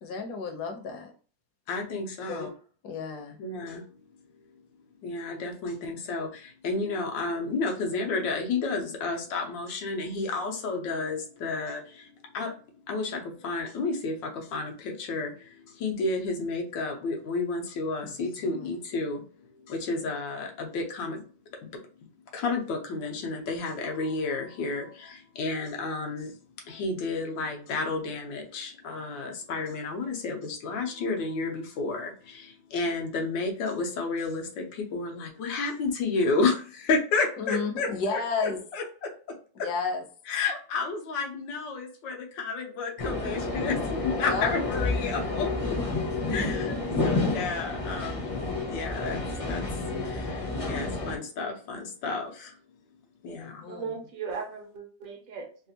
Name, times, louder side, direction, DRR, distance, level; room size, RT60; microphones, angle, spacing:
voice 1, 0.0-1.1 2.3-2.5 2.8-3.4 18.2-18.7 37.4-38.6 39.6-40.0 44.2-44.6 53.3-53.9, left 4 dB, 65° left, 3 dB, 1.2 m, -32 dB
voice 2, 1.7-2.5 3.4-3.8 5.0-12.1 12.3-12.5 12.9-19.2 19.7-21.2 21.6-21.7 22.3-26.3 26.7-39.1 40.3-45.5 46.3-48.4 48.7-49.2 49.5-49.7 50.0-52.5 53.2-53.6, left 3 dB, 85° left, 1 dB, 1.5 m, -31 dB
sound 1, 43.0-51.2, left 3 dB, 40° left, 0.5 m, -30 dB
voice 3, 53.7-55.7, right 5 dB, 60° right, 2 dB, 1.1 m, -37 dB
3.5 x 2.4 x 2.8 m, 0.40 s
omnidirectional pair, 1.9 m